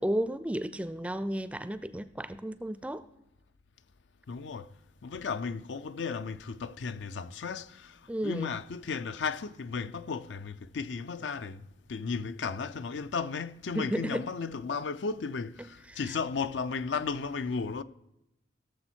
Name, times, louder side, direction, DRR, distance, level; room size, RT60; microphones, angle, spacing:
voice 1, 0.0-3.1 8.1-8.5 13.7-14.3 15.9-16.0, right 1 dB, 5° right, 0.4 m, -33 dB
voice 2, 4.3-4.7 5.0-17.8, left 5 dB, 80° left, 0.5 m, -35 dB
16.5 x 7.0 x 4.4 m
head